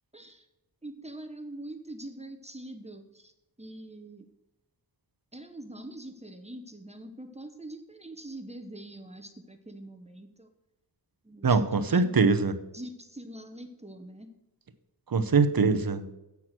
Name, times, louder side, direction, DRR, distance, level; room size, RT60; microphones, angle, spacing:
voice 1, 0.1-0.5 0.8-3.3 3.6-4.3 5.3-10.5 11.2-12.1 12.7-14.3, right 1 dB, 15° right, 6 dB, 1.0 m, -44 dB
voice 2, 11.4-12.5 15.1-16.0, right 4 dB, 60° right, 10 dB, 0.8 m, -23 dB
8.3 x 6.1 x 6.0 m, 0.97 s
wide cardioid pair, 85°, 41 cm